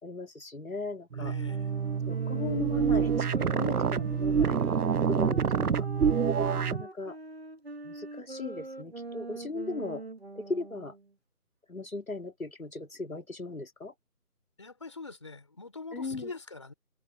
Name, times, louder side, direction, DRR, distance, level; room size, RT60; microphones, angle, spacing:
voice 1, 0.0-1.4 2.1-4.6 5.1-5.9 6.5-7.2 7.8-10.0 10.3-10.9 11.7-13.9 15.9-16.3, left 3 dB, 65° left, 2.7 m, -37 dB
voice 2, 1.1-1.7 9.4-9.5 14.6-16.7, left 3 dB, 20° left, 4.3 m, -44 dB
sound 1, 1.1-6.8, right 7 dB, 75° right, 0.7 m, -27 dB
sound 2, 1.4-11.1, right 2 dB, 40° right, 3.2 m, -43 dB
figure-of-eight pair, 180°, 46 cm